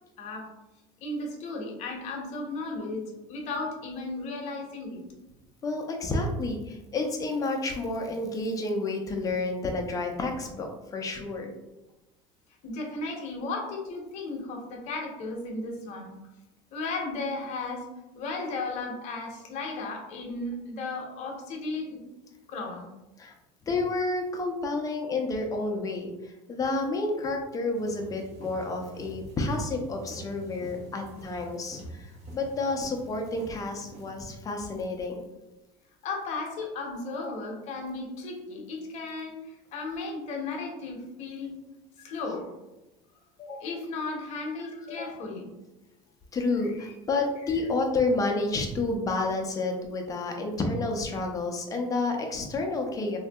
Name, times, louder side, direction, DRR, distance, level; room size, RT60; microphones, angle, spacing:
voice 1, 0.2-0.5 1.0-5.0 12.6-16.1 16.7-17.8 18.1-22.0 22.5-22.9 36.0-41.5 42.0-42.5 43.4-45.5 46.6-46.9 47.5-47.6, left 3 dB, 50° left, 1 dB, 0.8 m, -35 dB
voice 2, 5.6-11.5 23.2-23.3 23.7-31.8 32.3-35.2 46.3-53.2, left 2 dB, 25° left, 2 dB, 0.5 m, -30 dB
sound 1, 27.7-34.1, right 1 dB, 45° right, 1.2 m, -46 dB
3.4 x 2.6 x 2.3 m, 0.99 s
supercardioid pair, 130°, 15 cm